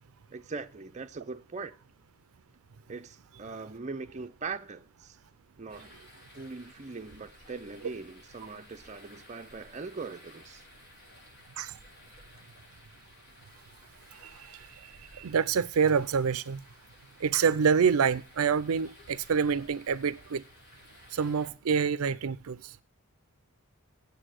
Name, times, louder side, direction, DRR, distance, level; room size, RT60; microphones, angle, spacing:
voice 1, 0.3-1.8 2.9-5.2 5.6-5.9 6.3-10.6, right 4 dB, 35° right, 0.7 m, -41 dB
sound 1, 5.7-21.5, left 1 dB, 50° left, 6.7 m, -55 dB
voice 2, 14.2-14.6 15.1-16.6 17.2-20.4 21.1-22.7, right 6 dB, 80° right, 0.5 m, -27 dB
8.3 x 8.1 x 6.4 m
head